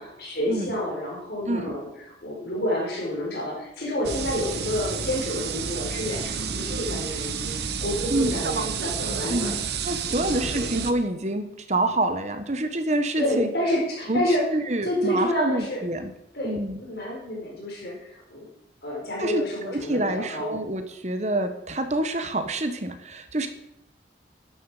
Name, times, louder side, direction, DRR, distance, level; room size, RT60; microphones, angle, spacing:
voice 1, 0.0-9.5 10.1-10.7 13.2-14.5 14.8-15.9 16.3-18.5 18.8-20.6, left 1 dB, 60° left, -2 dB, 4.7 m, -29 dB
sound 1, 4.0-10.9, right 6 dB, 65° right, 1.2 m, -30 dB
voice 2, 8.1-8.4 9.3-13.5 14.1-14.2 14.5-16.1 16.4-16.8 19.2-23.5, right 1 dB, 40° right, 8 dB, 1.2 m, -27 dB
14.0 x 10.0 x 5.0 m, 0.84 s
head